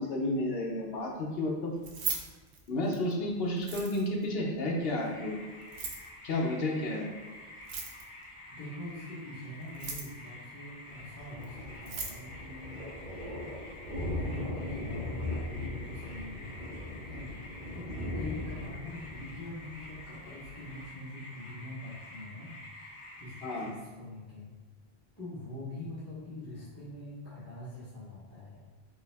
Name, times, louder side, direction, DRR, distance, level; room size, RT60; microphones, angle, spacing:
voice 1, 0.0-1.7 2.7-5.3 6.2-7.1 23.4-23.7, left 1 dB, 65° left, -1 dB, 0.9 m, -31 dB
Keys jangling, 1.7-3.1 3.6-4.2 5.6-6.1 7.6-8.2 9.6-10.3 11.4-11.5 11.8-12.2, right 5 dB, 85° right, 0.9 m, -38 dB
sound 1, 4.8-23.7, left 1 dB, 40° left, 0.5 m, -49 dB
voice 2, 8.5-12.8 14.0-16.6 16.9-17.3 17.7-22.5 23.2-24.5 25.2-28.6, left 2 dB, 15° left, -11 dB, 1.0 m, -44 dB
Thunder, 10.9-20.9, left 1 dB, 45° right, 0.7 m, -39 dB
5.4 x 2.0 x 3.4 m, 1.3 s
omnidirectional pair, 1.1 m